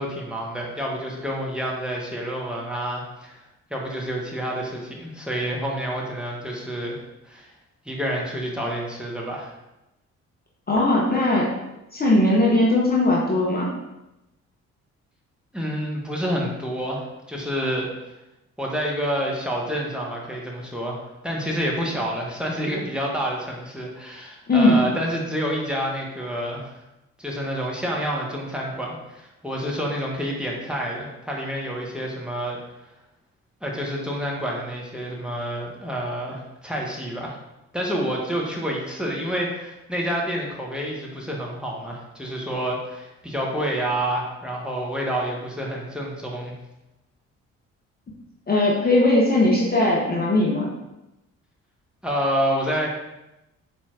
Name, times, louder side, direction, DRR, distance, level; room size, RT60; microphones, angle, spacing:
voice 1, 0.0-3.4 3.7-7.0 7.3-7.5 7.8-9.5 15.5-17.9 18.6-26.7 27.2-32.6 33.6-37.4 37.7-46.5 52.0-52.9, equal, ahead, -2 dB, 1.0 m, -28 dB
voice 2, 10.7-11.5 11.9-13.7 24.5-24.8 48.5-50.7, left 2 dB, 25° left, -4 dB, 0.8 m, -19 dB
4.4 x 4.2 x 2.4 m, 0.93 s
figure-of-eight pair, 40°, 38 cm